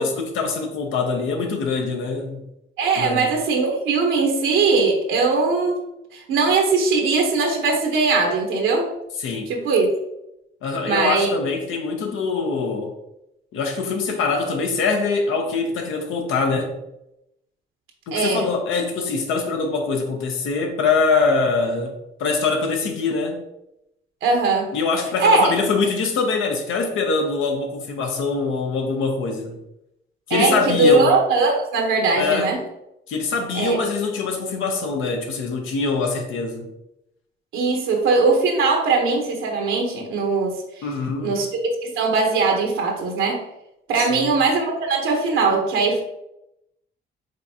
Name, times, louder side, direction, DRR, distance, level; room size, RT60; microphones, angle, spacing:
voice 1, 0.0-2.5 3.0-3.3 9.2-9.5 10.6-12.9 13.5-16.8 18.1-23.4 24.7-29.6 30.3-31.1 32.1-32.5 33.1-36.7 40.8-41.5 44.0-44.3, left 4 dB, 90° left, 0.8 m, -23 dB
voice 2, 2.8-5.8 6.1-8.9 9.5-9.9 10.8-11.3 18.1-18.5 24.2-24.7 25.2-25.5 30.3-32.6 33.5-33.8 37.5-40.6 41.2-43.4 43.9-46.0, right 3 dB, 85° right, 1.0 m, -20 dB
5.1 x 3.5 x 2.8 m
cardioid pair, 90°, 20 cm